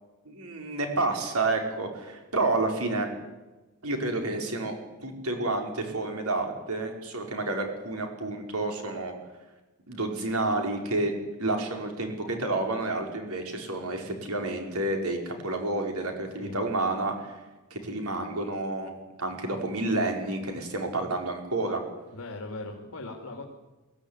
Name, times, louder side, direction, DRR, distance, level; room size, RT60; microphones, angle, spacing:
voice 1, 0.2-3.1 3.8-4.8 5.0-9.1 9.9-17.4 17.7-18.9 19.2-21.8, right 2 dB, 75° right, 3 dB, 5.1 m, -30 dB
voice 2, 22.1-23.4, left 2 dB, 75° left, 1 dB, 2.6 m, -39 dB
23.0 x 16.0 x 9.9 m, 1.1 s
head